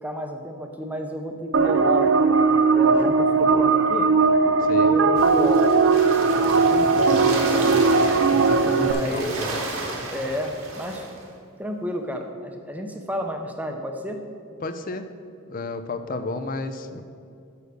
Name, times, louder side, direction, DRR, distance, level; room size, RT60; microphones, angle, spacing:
voice 1, 0.0-4.1 4.7-5.7 6.4-7.9 8.8-9.4 10.1-11.0 11.6-14.2 16.1-16.2, equal, 5° right, 4 dB, 0.6 m, -31 dB
sound 1, 1.5-8.9, right 4 dB, 60° right, 0.4 m, -18 dB
voice 2, 4.6-4.9 8.4-9.6 14.6-15.1 15.5-17.0, left 3 dB, 40° left, 9 dB, 0.5 m, -32 dB
sound 2, 5.2-11.2, right 2 dB, 80° right, 1.6 m, -32 dB
6.8 x 6.3 x 6.6 m, 2.5 s
head